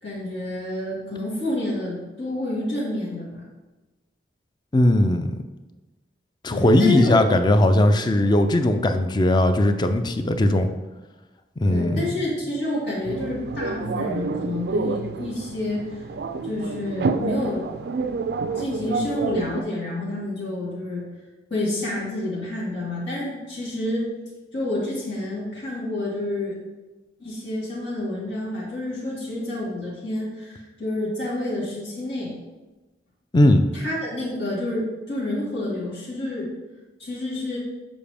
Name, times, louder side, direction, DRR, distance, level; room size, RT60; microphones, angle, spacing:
voice 1, 0.0-3.4 6.5-7.3 11.7-16.0 16.4-17.7 18.6-21.1 21.5-24.1 24.5-26.6 27.2-32.4 33.7-36.5 37.0-37.6, left 1 dB, 85° left, -7 dB, 2.1 m, -29 dB
voice 2, 4.7-5.4 6.4-10.7 11.6-12.1 33.3-33.6, left 1 dB, 25° left, 8 dB, 0.4 m, -18 dB
sound 1, 13.0-19.6, right 4 dB, 60° right, 0.3 m, -29 dB
7.2 x 5.0 x 3.4 m, 1.1 s
head